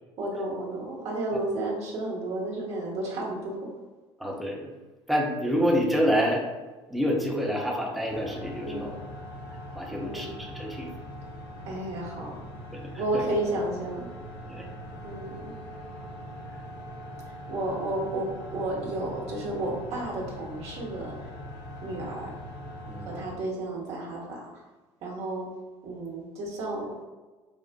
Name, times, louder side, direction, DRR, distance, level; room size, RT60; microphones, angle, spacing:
voice 1, 0.2-3.7 8.6-8.9 10.0-10.3 11.6-12.4 13.0-14.1 15.0-15.5 17.5-21.3 21.8-22.3 23.0-24.6 25.0-25.5 25.8-27.0, right 2 dB, 50° right, -4 dB, 1.2 m, -32 dB
voice 2, 4.2-4.7 5.1-6.4 6.9-9.0 9.5-10.9 12.7-12.9 14.5-14.6 22.9-23.2, equal, ahead, -3 dB, 0.9 m, -27 dB
sound 1, 8.1-23.4, equal, 65° left, 0.7 m, -41 dB
5.2 x 2.4 x 2.2 m, 1.3 s
hypercardioid pair, 65°, 14 cm